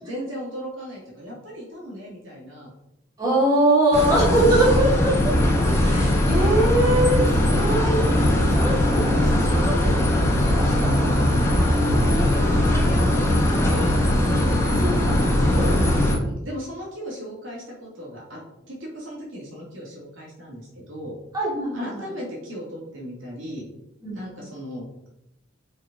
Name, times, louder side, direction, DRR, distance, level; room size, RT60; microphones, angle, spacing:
voice 1, 0.0-2.7 4.1-4.9 11.1-11.2 12.0-14.0 15.4-18.4 18.7-21.1 21.7-23.6 24.1-25.1, equal, 85° right, -4 dB, 3.0 m, -36 dB
voice 2, 3.2-5.1 5.8-10.0 10.4-11.1 14.8-15.3 15.5-16.0 21.3-22.1 24.0-24.2, right 1 dB, 20° right, -7 dB, 2.9 m, -23 dB
sound 1, 3.9-16.2, left 1 dB, 15° left, 1.3 m, -20 dB
5.8 x 5.0 x 5.2 m, 0.85 s
head